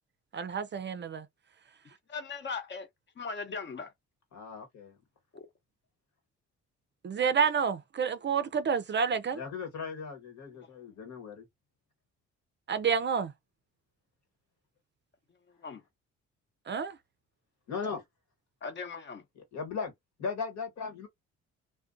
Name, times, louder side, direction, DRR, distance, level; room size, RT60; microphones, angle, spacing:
voice 1, 0.3-1.3 7.0-9.4 12.7-13.3 16.7-16.9, right 6 dB, 35° right, 0.4 m, -29 dB
voice 2, 2.1-2.9 3.2-3.9 5.3-5.5 15.6-15.8 18.6-19.2, left 4 dB, 40° left, 0.8 m, -38 dB
voice 3, 4.3-5.0 9.3-11.4 17.7-18.0 19.3-19.9 20.2-21.1, left 5 dB, 65° left, 1.4 m, -37 dB
2.4 x 2.2 x 2.5 m
cardioid pair, 90°, 30 cm